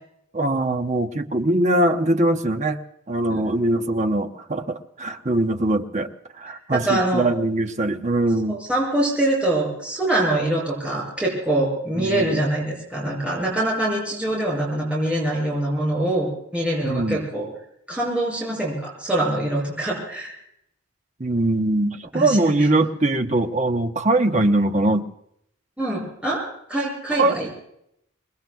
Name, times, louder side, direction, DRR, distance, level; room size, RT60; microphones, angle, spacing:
voice 1, 0.3-2.8 3.1-6.1 6.4-8.6 12.0-12.4 16.8-17.2 21.2-25.1 27.2-27.6, right 2 dB, 35° right, 6 dB, 1.0 m, -22 dB
voice 2, 6.7-7.3 8.5-17.5 17.9-20.3 22.1-22.7 25.8-27.5, right 1 dB, 5° right, -5 dB, 6.4 m, -24 dB
27.0 x 20.5 x 2.3 m, 0.76 s
head